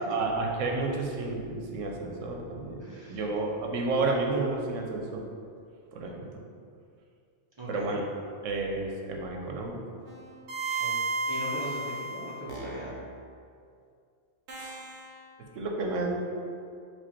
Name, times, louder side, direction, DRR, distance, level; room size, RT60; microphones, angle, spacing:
voice 1, 0.0-2.8 3.1-5.3 5.9-6.4 7.7-8.0 8.4-9.8 10.6-10.8 14.6-14.8 15.5-16.1, right 3 dB, 90° right, 1 dB, 1.0 m, -31 dB
voice 2, 2.8-3.2 7.6-8.0 10.8-10.9 11.3-12.9, right 1 dB, 25° right, -7 dB, 0.8 m, -39 dB
sound 1, 10.1-13.1 14.5-15.1, right 3 dB, 70° right, 1.0 m, -33 dB
4.4 x 2.4 x 4.3 m, 2.3 s
omnidirectional pair, 1.3 m